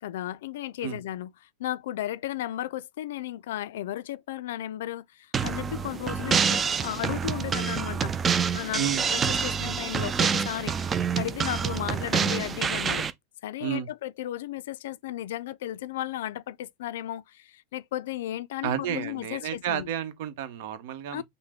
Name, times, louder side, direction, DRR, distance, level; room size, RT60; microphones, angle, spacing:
voice 1, 0.0-8.2 8.5-13.1 13.4-19.9 21.1-21.2, left 13 dB, 75° left, 0.3 m, -34 dB
sound 1, 5.3-13.1, right 6 dB, 20° right, 0.4 m, -27 dB
voice 2, 18.6-21.2, right 9 dB, 60° right, 0.9 m, -31 dB
5.6 x 2.1 x 3.6 m
supercardioid pair, 145°, 0 cm